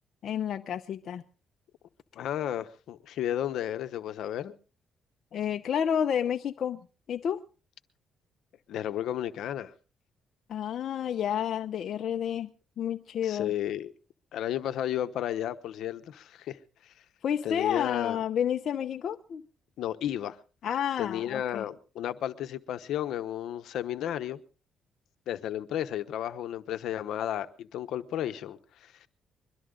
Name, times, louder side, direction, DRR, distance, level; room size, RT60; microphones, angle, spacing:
voice 1, 0.2-1.2 5.3-7.4 10.5-12.5 12.8-13.5 17.2-19.4 20.6-21.6, left 9 dB, 65° left, 0.7 m, -30 dB
voice 2, 2.1-4.5 8.7-9.7 13.2-13.9 14.3-16.6 17.4-18.2 19.8-20.4 21.0-24.4 25.3-29.1, left 11 dB, 80° left, 1.0 m, -33 dB
22.5 x 12.5 x 3.8 m
cardioid pair, 90°, 0 cm